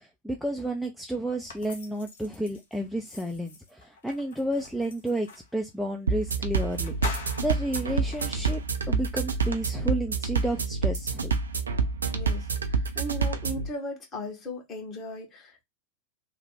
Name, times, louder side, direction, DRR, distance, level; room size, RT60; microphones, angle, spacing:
voice 1, 0.0-11.3, right 1 dB, ahead, 0.5 m, -31 dB
sound 1, 1.5-5.5 6.2-6.3 6.6-8.7, left 4 dB, 60° left, 0.8 m, -43 dB
sound 2, 6.1-13.7, right 4 dB, 75° right, 0.4 m, -28 dB
voice 2, 12.1-15.6, left 1 dB, 25° left, 1.3 m, -37 dB
3.2 x 2.2 x 3.3 m
figure-of-eight pair, 90°, 0 cm